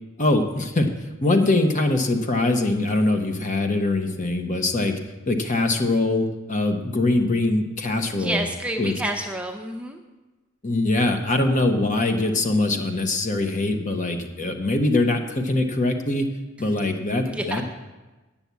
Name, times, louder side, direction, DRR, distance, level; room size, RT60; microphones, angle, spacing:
voice 1, 0.2-0.9 1.2-5.0 5.3-8.4 8.8-8.9 10.6-16.3 16.6-17.6, left 2 dB, 40° left, 5 dB, 1.1 m, -22 dB
voice 2, 8.1-10.0 17.3-17.6, right 1 dB, 5° right, 3 dB, 0.6 m, -29 dB
9.0 x 7.2 x 8.1 m, 1.1 s
head